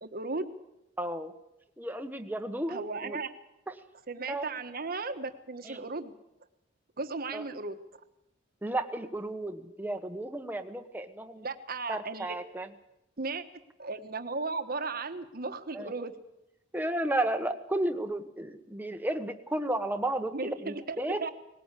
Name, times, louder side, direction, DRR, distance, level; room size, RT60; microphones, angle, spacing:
voice 1, 0.0-0.4 2.7-3.3 4.1-6.1 7.0-7.7 11.4-12.4 13.2-13.4 13.8-16.1 20.3-21.3, right 3 dB, 55° right, 8 dB, 1.4 m, -35 dB
voice 2, 1.0-1.3 1.8-3.2 4.3-4.5 5.6-5.8 7.3-7.4 8.6-11.4 11.9-12.7 15.7-15.9 16.7-21.3, right 1 dB, 10° right, 7 dB, 1.3 m, -33 dB
19.5 x 18.0 x 8.3 m, 0.87 s
head